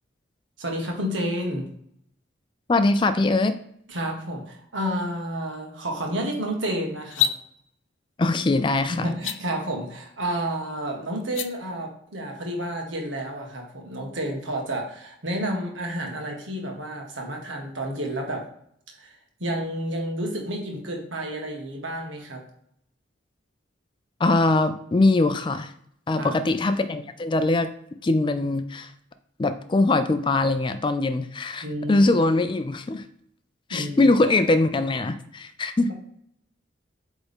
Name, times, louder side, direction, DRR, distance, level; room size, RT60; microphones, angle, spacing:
voice 1, 0.6-1.7 3.9-7.3 8.9-18.4 19.0-19.1 19.4-22.4 26.2-26.4 31.6-32.1 33.7-34.2 35.9-36.0, right 1 dB, 85° right, 1 dB, 1.6 m, -30 dB
voice 2, 2.7-3.6 8.2-9.1 24.2-25.7 26.1-27.7 28.0-28.9 29.4-33.0 33.7-35.9, left 2 dB, 25° left, 10 dB, 0.4 m, -22 dB
sound 1, 7.0-7.4 9.1-9.4 11.2-11.5, left 9 dB, 80° left, 0.5 m, -24 dB
8.1 x 3.5 x 3.5 m, 0.69 s
head